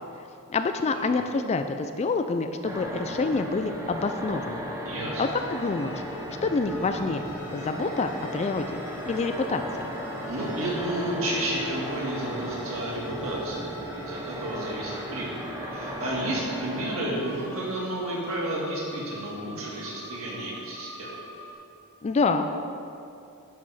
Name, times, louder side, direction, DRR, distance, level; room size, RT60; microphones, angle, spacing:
voice 1, 0.5-4.8 5.2-6.0 6.4-7.2 7.5-9.9 22.0-22.4, left 4 dB, 30° left, 7 dB, 0.3 m, -27 dB
sound 1, 2.6-18.6, equal, 15° right, 1.0 m, -36 dB
voice 2, 4.8-5.2 10.3-13.6 13.9-15.4 15.7-21.1, right 1 dB, 70° right, -4 dB, 2.0 m, -31 dB
sound 2, 5.1-21.5, equal, 80° left, 1.8 m, -46 dB
10.0 x 4.9 x 5.7 m, 2.6 s
head